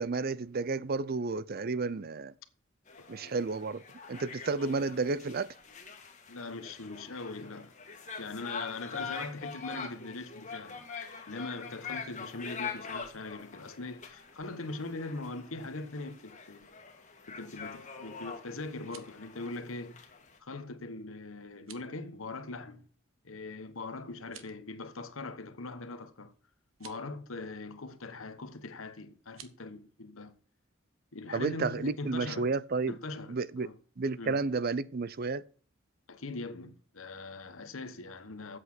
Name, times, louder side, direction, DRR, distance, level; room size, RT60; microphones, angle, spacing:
voice 1, 0.0-2.3 3.1-3.8 4.1-5.5 31.3-33.0 33.3-33.7 34.0-35.4, right 4 dB, 50° right, 0.5 m, -31 dB
sound 1, 2.9-20.4, left 5 dB, 40° left, 1.6 m, -44 dB
voice 2, 3.0-3.4 6.3-7.7 8.2-16.7 17.3-20.0 20.4-22.9 23.2-26.3 26.8-30.3 31.1-32.6 32.9-33.8 34.2-34.4 36.1-38.6, left 3 dB, 85° left, 1.2 m, -41 dB
sound 2, 18.7-19.2 21.5-21.9 24.2-24.7 26.7-27.0 29.3-29.6, right 10 dB, 90° right, 1.2 m, -52 dB
8.1 x 8.0 x 6.1 m
head